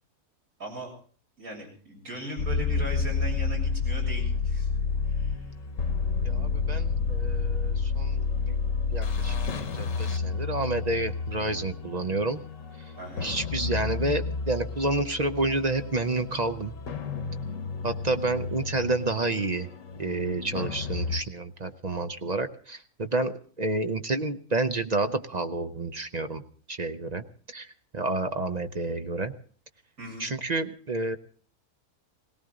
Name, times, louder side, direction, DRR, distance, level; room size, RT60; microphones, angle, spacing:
voice 1, 0.6-0.9 1.4-4.7 5.1-5.4 13.0-13.3 30.0-30.3, right 1 dB, 70° right, -1 dB, 7.8 m, -38 dB
sound 1, 2.4-21.2, left 5 dB, 60° left, 1.4 m, -30 dB
voice 2, 6.2-8.6 8.9-12.4 13.2-16.7 17.8-19.7 20.0-26.4 26.7-27.2 27.5-27.7 27.9-29.3 30.2-31.2, right 2 dB, 40° right, 9 dB, 0.6 m, -29 dB
19.0 x 18.0 x 3.8 m, 0.43 s
omnidirectional pair, 1.6 m